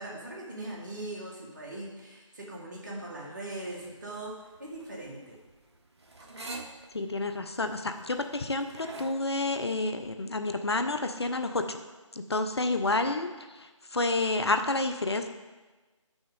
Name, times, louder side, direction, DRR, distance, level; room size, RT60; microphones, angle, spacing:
voice 1, 0.0-4.3 4.6-5.4, right 1 dB, 35° right, -3 dB, 2.1 m, -40 dB
sound 1, 3.7-9.1, right 2 dB, 55° right, 1.1 m, -45 dB
voice 2, 6.9-11.8 12.3-15.3, left 2 dB, 50° left, 8 dB, 0.6 m, -29 dB
7.8 x 6.2 x 5.3 m, 1.2 s
figure-of-eight pair, 155°, 17 cm